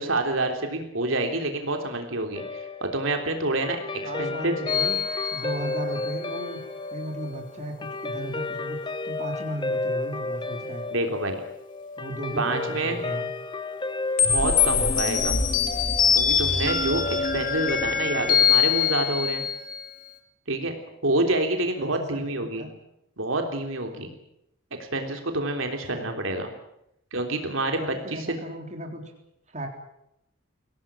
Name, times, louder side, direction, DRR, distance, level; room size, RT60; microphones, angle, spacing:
voice 1, 0.0-3.8 4.2-4.5 10.9-11.4 12.4-13.0 14.2-15.4 16.1-19.4 20.5-20.7 21.0-22.6 23.2-24.1 24.8-26.5 27.1-27.8 28.1-28.3, right 2 dB, 70° right, 4 dB, 3.4 m, -27 dB
Guitar, 2.3-16.9, left 3 dB, 20° left, 1.0 m, -33 dB
voice 2, 4.0-5.0 5.3-6.6 6.9-10.8 12.0-13.3 21.8-22.7 25.9-26.1 27.8-29.0 29.5-29.7, right 1 dB, 35° right, 2 dB, 3.7 m, -36 dB
sound 1, 4.7-6.2 14.2-19.9, left 7 dB, 40° left, 2.4 m, -23 dB
24.0 x 17.5 x 8.8 m, 0.81 s
head